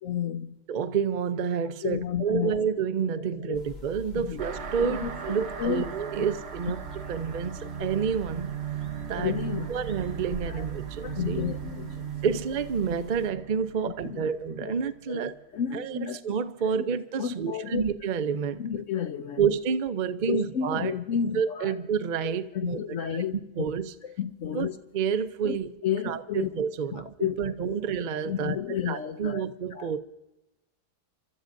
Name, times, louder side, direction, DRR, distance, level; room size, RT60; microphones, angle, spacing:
voice 1, 0.0-0.6 1.8-2.6 3.4-3.6 4.1-4.4 4.8-5.8 7.8-7.9 9.2-9.7 10.5-10.6 11.0-12.4 13.8-14.7 15.1-15.2 15.5-16.2 16.6-16.8 17.2-17.8 18.6-19.4 20.3-21.7 22.2-23.7 24.0-24.8 25.4-25.6 25.8-26.5 26.9-27.8 28.2-29.4 29.7-30.0, left 9 dB, 65° left, 9 dB, 0.8 m, -32 dB
voice 2, 0.7-8.5 9.1-9.3 9.7-11.4 12.2-15.3 15.7-16.0 16.2-18.6 19.4-21.0 21.3-22.8 23.1-23.9 24.5-25.7 26.0-30.0, right 7 dB, 85° right, 9 dB, 0.4 m, -29 dB
sound 1, 3.5-13.3, right 4 dB, 35° left, 2.2 m, -45 dB
sound 2, 4.4-15.4, right 7 dB, 50° right, 1.0 m, -38 dB
30.0 x 13.0 x 2.6 m, 0.94 s
omnidirectional pair, 1.8 m